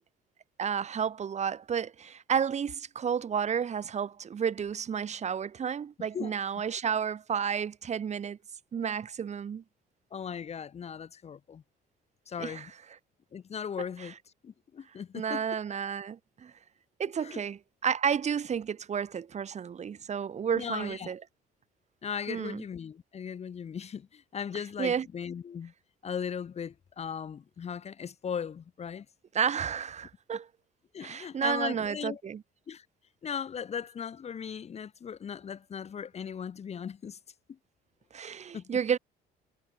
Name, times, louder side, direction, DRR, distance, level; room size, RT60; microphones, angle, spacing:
voice 1, 0.6-8.4 8.7-9.6 12.4-12.8 13.8-14.2 15.1-16.5 17.0-21.2 22.3-22.6 24.5-25.1 29.3-30.5 31.0-32.4 38.1-39.0, right 7 dB, 40° right, 7.0 m, -31 dB
voice 2, 10.1-11.6 12.3-12.7 13.3-14.2 14.4-15.4 17.2-17.4 20.5-21.1 22.0-25.7 26.0-29.1 30.9-32.2 32.7-32.9 33.2-37.2 38.5-38.8, left 7 dB, 40° left, 2.0 m, -38 dB
cardioid pair, 110°, 17 cm